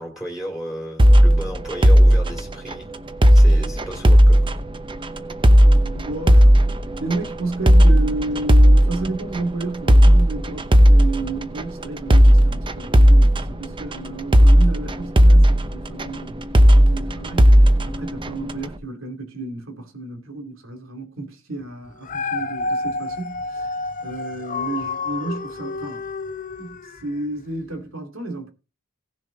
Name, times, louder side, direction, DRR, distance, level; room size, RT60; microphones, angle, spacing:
voice 1, 0.0-2.9 3.3-4.4, right 1 dB, 5° right, 2.7 m, -33 dB
sound 1, 1.0-18.7, equal, 25° right, 0.8 m, -15 dB
voice 2, 5.6-6.5 7.0-23.7 24.0-26.0 26.6-28.5, right 2 dB, 80° right, 2.6 m, -31 dB
Dog, 21.9-27.2 27.7-27.8, left 3 dB, 40° left, 0.9 m, -29 dB
17.5 x 6.8 x 3.9 m
head